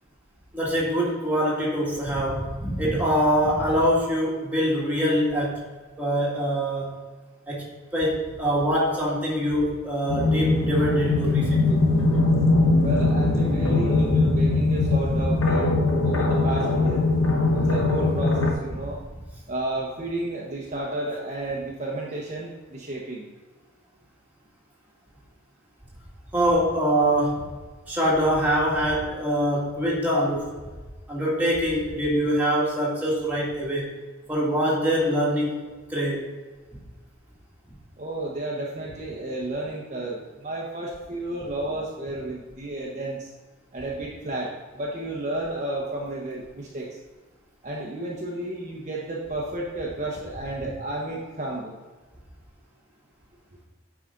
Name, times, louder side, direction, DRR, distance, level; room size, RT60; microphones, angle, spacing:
voice 1, 0.5-5.6 6.0-7.0 7.5-11.8 26.3-27.5 27.9-30.5 31.1-33.9 34.3-35.6 35.9-36.3, equal, 10° right, -5 dB, 2.1 m, -24 dB
sound 1, 10.1-18.5, left 2 dB, 90° left, 1.1 m, -21 dB
voice 2, 12.8-15.8 16.0-17.0 17.5-19.0 19.5-23.2 38.0-43.3 43.7-46.9 47.6-51.8, right 2 dB, 40° right, -3 dB, 1.0 m, -32 dB
9.7 x 4.9 x 3.9 m, 1.3 s
head